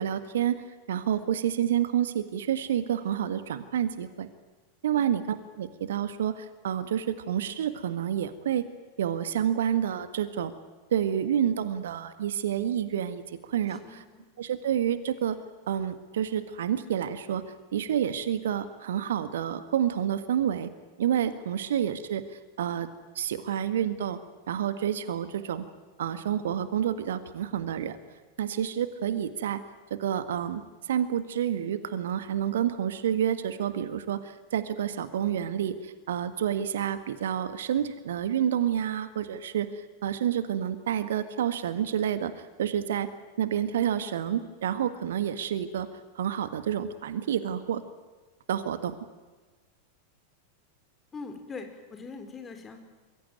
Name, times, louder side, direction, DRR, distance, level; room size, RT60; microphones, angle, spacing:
voice 1, 0.0-4.3 4.8-8.6 9.0-10.5 10.9-14.0 14.4-15.4 15.7-17.4 17.7-20.7 21.0-22.9 23.1-24.2 24.5-25.6 26.0-28.0 28.4-29.6 29.9-43.1 43.4-45.9 46.1-47.8 48.5-48.9, right 9 dB, 60° right, 12 dB, 1.7 m, -29 dB
voice 2, 13.7-14.2 51.1-52.8, left 4 dB, 20° left, 6 dB, 4.6 m, -42 dB
27.0 x 22.0 x 9.1 m, 1.3 s
figure-of-eight pair, 90°, 0 cm